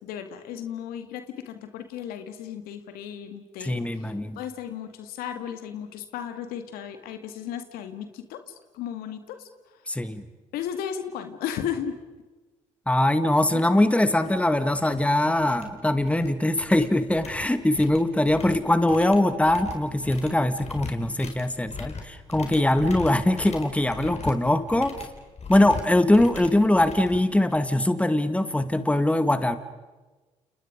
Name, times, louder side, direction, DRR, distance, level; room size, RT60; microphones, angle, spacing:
voice 1, 0.0-9.8 10.5-11.9 13.5-13.6, left 9 dB, 75° left, 8 dB, 2.1 m, -35 dB
voice 2, 3.6-4.4 9.9-10.2 12.9-25.0 25.5-29.6, left 1 dB, 10° left, 10 dB, 2.0 m, -22 dB
sound 1, 13.7-13.8 14.2-14.4 14.7-15.0 15.4-16.3 16.6-27.8, left 4 dB, 45° left, 4.8 m, -40 dB
30.0 x 29.5 x 5.2 m, 1.2 s
hypercardioid pair, 55°, 16 cm